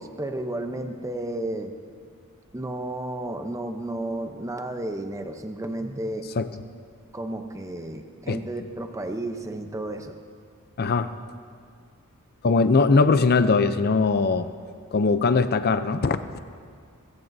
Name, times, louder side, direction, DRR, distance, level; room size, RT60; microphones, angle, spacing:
voice 1, 0.0-1.7 2.5-6.3 7.1-10.2 14.3-14.4, right 1 dB, 15° right, 6 dB, 0.7 m, -32 dB
voice 2, 10.8-11.1 12.4-14.5 14.9-16.4, left 4 dB, 45° left, 11 dB, 0.5 m, -21 dB
21.5 x 15.0 x 2.7 m, 2.2 s
head